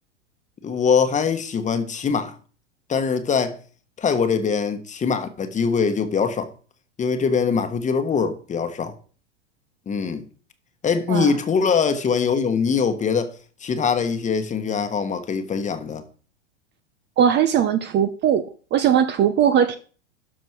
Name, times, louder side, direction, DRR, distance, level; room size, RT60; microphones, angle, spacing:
voice 1, 0.6-2.3 2.9-3.6 4.0-6.5 7.0-8.9 9.9-10.2 10.8-13.3 13.6-16.0, left 6 dB, 20° left, 1.3 m, -22 dB
voice 2, 17.2-19.8, right 9 dB, 30° right, 0.7 m, -19 dB
12.5 x 4.5 x 4.7 m
hypercardioid pair, 110°, 37 cm